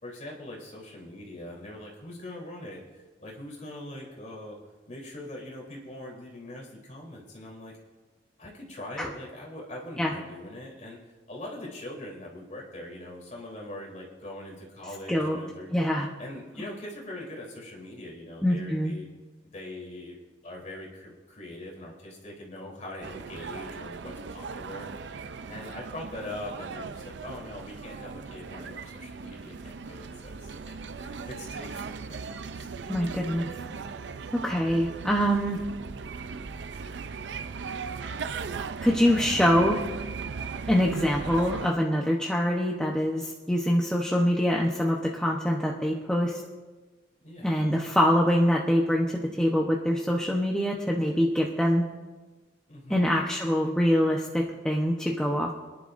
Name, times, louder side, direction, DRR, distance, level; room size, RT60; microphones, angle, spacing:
voice 1, 0.0-4.6 4.9-7.8 8.4-11.0 11.3-15.7 16.2-19.1 19.5-20.2 20.4-24.9 25.5-31.8 32.1-32.2 32.5-32.7 47.2-47.6 52.7-53.1, left 1 dB, 40° left, -3 dB, 3.4 m, -42 dB
voice 2, 15.1-15.4 15.7-16.1 18.4-18.9 32.9-33.5 34.3-35.6 38.8-39.8 40.7-46.4 47.4-51.8 52.9-55.5, equal, 5° left, -2 dB, 0.9 m, -24 dB
sound 1, 23.0-41.7, right 5 dB, 75° right, 0.5 m, -38 dB
26.5 x 10.5 x 2.6 m, 1.3 s
head